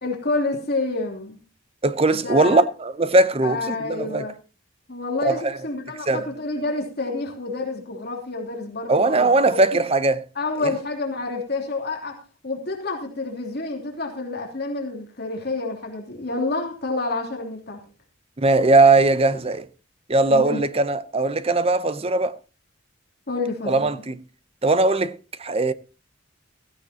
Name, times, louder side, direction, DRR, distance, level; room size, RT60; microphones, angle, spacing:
voice 1, 0.0-1.4 2.1-2.6 3.4-4.3 4.9-9.6 10.3-12.2 12.4-17.8 20.3-20.6 23.3-23.9, left 3 dB, 50° left, 3.1 m, -28 dB
voice 2, 1.8-4.3 5.2-5.6 6.1-6.3 8.9-10.2 10.6-10.7 18.4-19.7 20.1-22.3 23.7-24.2 24.6-25.7, right 2 dB, 30° right, 0.7 m, -19 dB
16.0 x 15.5 x 2.9 m
head